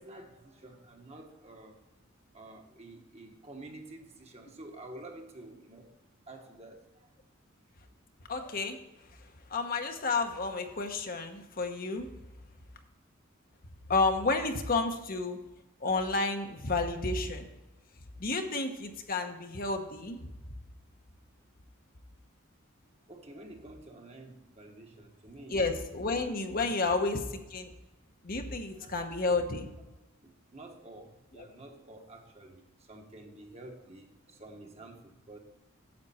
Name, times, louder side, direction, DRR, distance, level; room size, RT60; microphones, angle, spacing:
voice 1, 0.0-1.8 2.3-5.9 6.3-7.1 23.1-25.6 26.6-26.7 28.6-29.5 30.2-35.4, right 2 dB, 30° right, 3 dB, 1.3 m, -50 dB
voice 2, 8.3-8.8 9.5-12.1 13.9-15.4 15.8-17.5 18.2-20.2 25.5-27.2 27.5-27.7 28.2-29.7 31.4-31.5, left 3 dB, 45° left, 5 dB, 1.0 m, -31 dB
9.7 x 7.4 x 4.3 m, 1.0 s
head